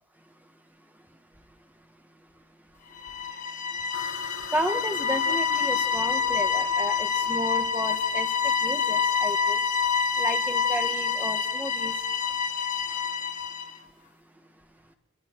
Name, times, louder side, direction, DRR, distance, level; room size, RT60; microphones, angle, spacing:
sound 1, 3.0-13.7, left 6 dB, 40° left, 1.2 m, -27 dB
sound 2, 3.9-13.1, left 4 dB, 90° left, 3.1 m, -48 dB
voice 1, 4.5-8.3 8.6-9.6 10.2-11.9, right 1 dB, 10° right, 5 dB, 1.6 m, -32 dB
29.0 x 23.0 x 4.7 m, 0.69 s
head